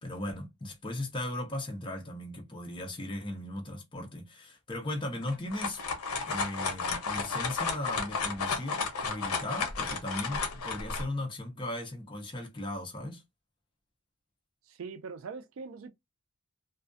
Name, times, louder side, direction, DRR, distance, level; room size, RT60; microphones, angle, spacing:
voice 1, 0.0-5.8 6.3-13.2, left 1 dB, 20° left, 0.6 m, -37 dB
sound 1, 5.2-11.0, left 4 dB, 80° left, 0.6 m, -33 dB
voice 2, 14.7-15.9, right 5 dB, 60° right, 0.4 m, -42 dB
2.4 x 2.2 x 2.4 m
head